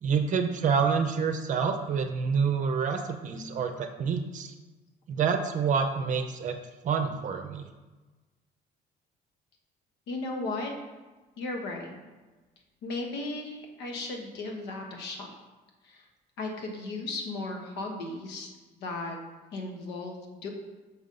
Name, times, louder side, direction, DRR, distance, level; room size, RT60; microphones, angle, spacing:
voice 1, 0.0-4.5 5.1-6.6 6.8-7.6, right 6 dB, 50° right, 6 dB, 0.6 m, -27 dB
voice 2, 10.1-10.7 11.4-11.9 12.8-15.3 15.8-16.0 16.4-19.2 19.5-20.5, left 2 dB, 85° left, 2 dB, 1.2 m, -36 dB
6.1 x 3.7 x 5.3 m, 1.2 s
cardioid pair, 110°, 17 cm